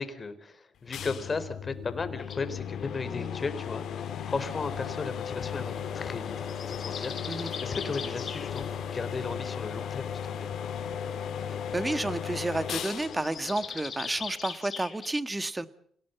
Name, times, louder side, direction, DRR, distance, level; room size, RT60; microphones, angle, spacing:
voice 1, 0.0-6.5 6.8-10.1 10.4-10.5, left 4 dB, 35° left, 11 dB, 4.0 m, -35 dB
sound 1, 0.9-14.4, left 8 dB, 70° left, 2.9 m, -36 dB
sound 2, 2.2-2.4 4.0-5.2 6.4-8.7 13.1-15.1, left 6 dB, 50° left, 5.1 m, -41 dB
voice 2, 11.7-15.7, right 2 dB, 15° right, 13 dB, 1.6 m, -31 dB
28.5 x 18.5 x 8.1 m, 0.66 s
cardioid pair, 90°, 0 cm